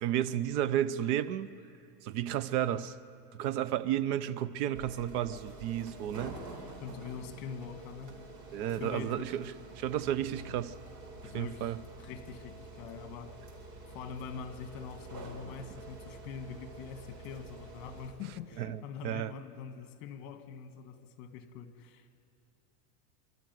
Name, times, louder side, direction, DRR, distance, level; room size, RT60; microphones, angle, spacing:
voice 1, 0.0-1.5 2.0-3.0 3.3-6.4 8.5-10.8 11.3-11.8 18.6-19.3, right 11 dB, 65° right, 0.9 m, -32 dB
sound 1, 4.7-18.1, right 2 dB, 45° right, 4.2 m, -48 dB
voice 2, 6.8-8.2 8.7-9.4 11.2-13.4 13.9-22.1, left 7 dB, 45° left, 1.9 m, -44 dB
26.0 x 13.0 x 9.3 m
supercardioid pair, 155°, 48 cm